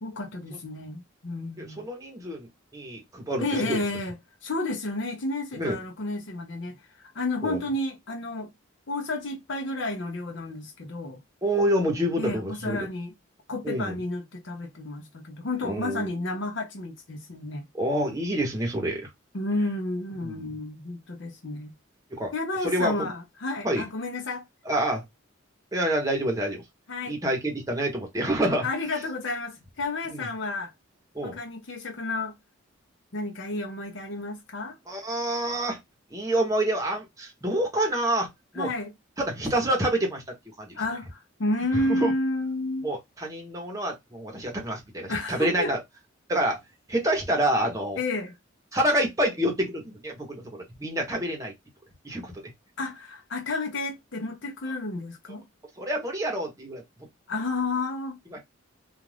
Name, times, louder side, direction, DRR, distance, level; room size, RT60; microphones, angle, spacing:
voice 1, 0.0-1.8 3.4-8.5 8.9-11.2 12.2-13.1 13.5-17.6 19.3-21.7 22.3-24.4 26.9-27.2 28.6-30.7 31.2-32.3 33.1-34.8 38.6-38.9 40.7-42.9 45.1-45.7 48.0-48.3 52.8-55.4 57.3-58.2, left 2 dB, 65° left, 0.7 m, -31 dB
voice 2, 1.6-2.5 2.7-3.8 5.5-5.8 7.4-7.6 11.4-12.9 13.6-14.0 15.6-16.1 17.7-19.1 20.2-20.3 22.1-22.3 22.6-23.1 23.6-23.8 24.6-25.0 25.7-26.6 27.1-28.7 30.1-30.3 31.1-31.4 34.9-35.8 36.1-38.7 39.2-40.2 40.6-40.8 41.7-42.1 42.8-45.8 46.3-46.6 46.9-48.0 48.7-51.5 52.0-52.4 55.8-56.8 58.3-58.4, right 1 dB, 15° right, 0.9 m, -27 dB
2.4 x 2.4 x 3.2 m
head